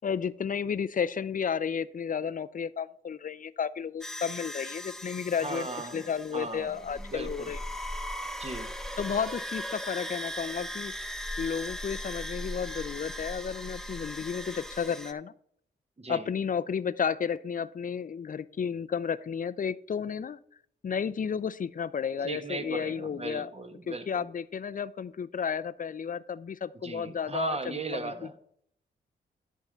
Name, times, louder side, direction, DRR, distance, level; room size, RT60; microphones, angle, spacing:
voice 1, 0.0-5.7 5.9-7.6 9.0-10.9 11.4-15.3 16.1-20.4 20.8-23.5 23.9-28.1, left 7 dB, 40° left, 16 dB, 0.6 m, -32 dB
sound 1, 4.0-15.1, equal, ahead, 0.9 m, -38 dB
voice 2, 5.4-7.5 8.4-8.7 16.0-16.3 22.2-24.2 26.8-28.4, right 3 dB, 30° right, 8 dB, 1.4 m, -37 dB
11.0 x 3.8 x 6.8 m, 0.66 s
supercardioid pair, 50°, 20 cm